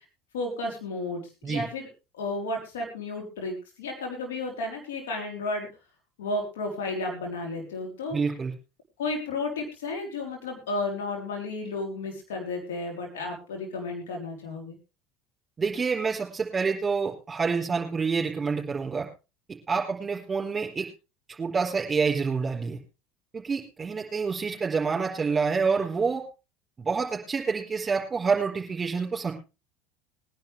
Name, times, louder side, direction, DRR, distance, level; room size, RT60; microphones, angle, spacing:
voice 1, 0.3-1.9 2.1-5.7 6.2-8.2 9.0-14.8, left 2 dB, 75° left, 1 dB, 3.8 m, -33 dB
voice 2, 8.1-8.5 15.6-19.1 19.7-20.9 21.4-22.8 23.3-26.2 26.8-29.3, right 5 dB, 25° right, -1 dB, 4.3 m, -27 dB
21.5 x 10.5 x 3.4 m, 0.30 s
hypercardioid pair, 70°, 0 cm